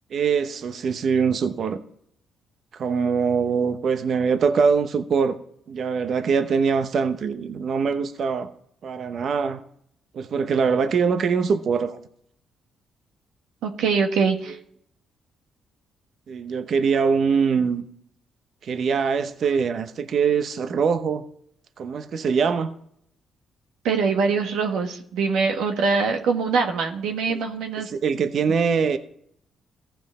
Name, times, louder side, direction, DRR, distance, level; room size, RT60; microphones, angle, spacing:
voice 1, 0.1-1.8 2.8-5.4 5.7-8.5 8.8-9.6 10.1-12.0 16.3-17.8 18.6-21.3 21.8-22.7 27.3-27.4 27.8-29.0, right 5 dB, 60° right, 0.8 m, -23 dB
voice 2, 13.6-14.6 23.8-27.9, right 5 dB, 85° right, 1.4 m, -23 dB
14.5 x 5.9 x 4.2 m
cardioid pair, 90°, 0 cm